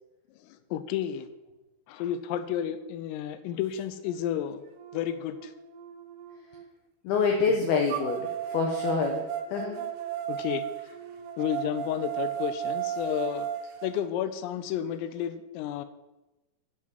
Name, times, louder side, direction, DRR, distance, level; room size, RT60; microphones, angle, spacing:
voice 1, 0.7-1.3 1.9-4.6 4.9-5.5 10.3-10.7 11.4-13.5 13.8-15.9, left 10 dB, 90° left, 12 dB, 3.5 m, -31 dB
sound 1, 4.1-4.2 4.8-6.7 7.9-13.9, right 10 dB, 80° right, 3.4 m, -35 dB
voice 2, 7.0-9.8, left 5 dB, 70° left, 2 dB, 2.5 m, -27 dB
9.7 x 8.1 x 7.5 m, 1.0 s
omnidirectional pair, 5.8 m